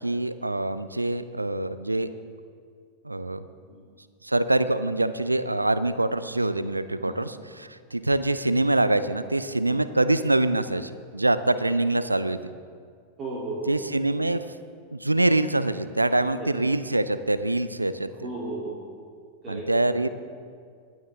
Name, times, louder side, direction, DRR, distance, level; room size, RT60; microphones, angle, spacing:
voice 1, 0.0-2.1 3.0-3.4 4.2-12.4 13.7-14.4 14.9-18.1 19.5-20.1, right 2 dB, 85° right, 12 dB, 0.6 m, -24 dB
voice 2, 13.2-13.7 16.2-16.5 18.1-18.9 19.4-20.0, right 2 dB, 30° right, -6 dB, 3.2 m, -35 dB
25.0 x 9.4 x 3.6 m, 2.1 s
figure-of-eight pair, 90°, 0 cm